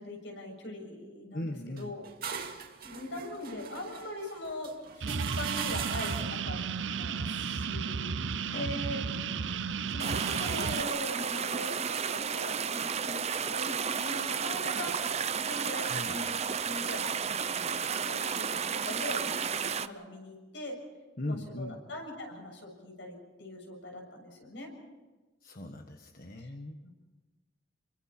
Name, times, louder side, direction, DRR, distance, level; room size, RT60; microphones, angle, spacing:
voice 1, 0.0-2.0 2.4-6.6 7.0-8.0 8.5-9.0 9.9-15.0 15.4-20.8 21.3-24.7 26.4-26.5 26.8-26.9, left 1 dB, 75° left, 2 dB, 7.1 m, -41 dB
voice 2, 1.3-1.9 8.5-8.8 9.1-9.5 15.7-16.2 21.2-21.8 25.4-26.8, left 1 dB, 50° left, 4 dB, 1.4 m, -39 dB
sound 1, 1.8-6.5, right 7 dB, 55° right, 2.2 m, -40 dB
sound 2, 5.0-10.8, right 6 dB, 90° right, 0.6 m, -33 dB
sound 3, 10.0-19.9, right 7 dB, 35° right, 0.7 m, -32 dB
29.0 x 23.5 x 4.4 m, 1.2 s
head